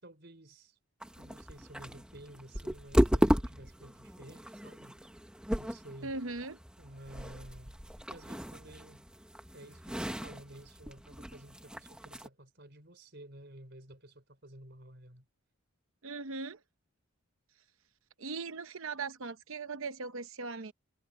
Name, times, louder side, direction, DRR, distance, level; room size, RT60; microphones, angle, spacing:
voice 1, 0.0-0.8 1.2-5.0 5.6-6.1 6.8-7.8 8.1-9.0 9.5-15.2, right 1 dB, 50° right, 4.9 m, -52 dB
sound 1, 1.0-12.3, equal, 5° right, 1.2 m, -34 dB
voice 2, 6.0-6.6 16.0-16.6 18.2-20.7, right 4 dB, 75° right, 0.9 m, -39 dB
head